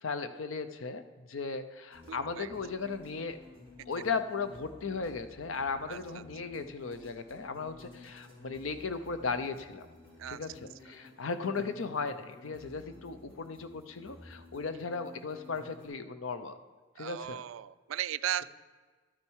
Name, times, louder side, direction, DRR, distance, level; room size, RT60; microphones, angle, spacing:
voice 1, 0.0-1.0 1.3-3.4 3.9-9.9 10.3-10.5 10.8-16.6 17.0-17.4, left 4 dB, 85° left, 10 dB, 0.7 m, -36 dB
sound 1, 1.9-15.9, left 2 dB, 25° left, 3.3 m, -54 dB
voice 2, 2.1-2.5 5.9-6.2 10.2-10.5 17.0-18.4, right 11 dB, 80° right, 16 dB, 0.3 m, -37 dB
12.0 x 8.7 x 4.7 m, 1.5 s
head